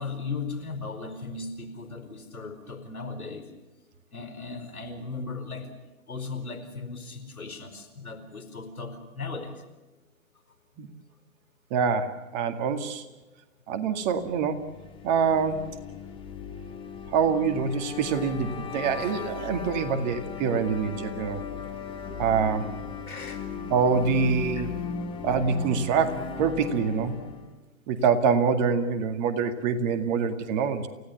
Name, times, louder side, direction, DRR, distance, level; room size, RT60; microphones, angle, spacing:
voice 1, 0.0-3.5 4.1-5.7 6.1-9.6 19.0-19.1 21.3-21.4 23.0-23.4 24.5-24.7, left 4 dB, 85° left, 8 dB, 4.8 m, -37 dB
voice 2, 11.7-13.1 13.7-14.7 15.0-15.8 17.1-21.4 22.2-22.7 23.7-24.7 25.2-27.1 27.9-30.9, right 6 dB, 30° right, 7 dB, 2.2 m, -25 dB
sound 1, 14.5-27.5, left 5 dB, 10° left, 2.1 m, -37 dB
29.5 x 17.5 x 7.1 m, 1.1 s
figure-of-eight pair, 130°, 42 cm